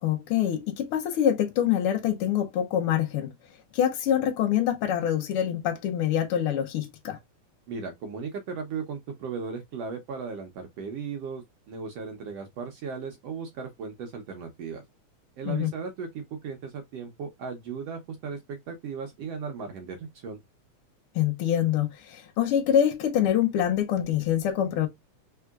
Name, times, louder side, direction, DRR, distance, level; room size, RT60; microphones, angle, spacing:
voice 1, 0.0-3.3 3.7-7.2 15.4-15.7 21.1-24.9, left 10 dB, 65° left, 1.4 m, -25 dB
voice 2, 7.7-14.8 15.4-20.4, right 5 dB, 70° right, 1.6 m, -36 dB
4.8 x 3.6 x 2.3 m
omnidirectional pair, 3.6 m